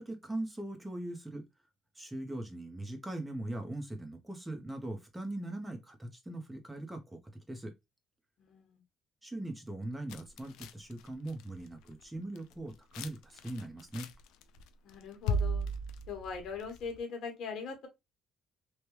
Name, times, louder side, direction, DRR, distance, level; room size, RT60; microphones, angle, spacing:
voice 1, 0.0-1.5 1.9-7.7 9.2-14.1, right 1 dB, 10° right, 0.8 m, -40 dB
voice 2, 8.4-8.8 14.8-15.7 16.1-17.9, left 5 dB, 70° left, 1.2 m, -41 dB
sound 1, 10.1-11.6 11.9-12.0 12.4-13.1 13.4-14.6 14.9-17.0, equal, 85° left, 0.4 m, -35 dB
3.3 x 2.2 x 3.0 m
cardioid pair, 100°, 0 cm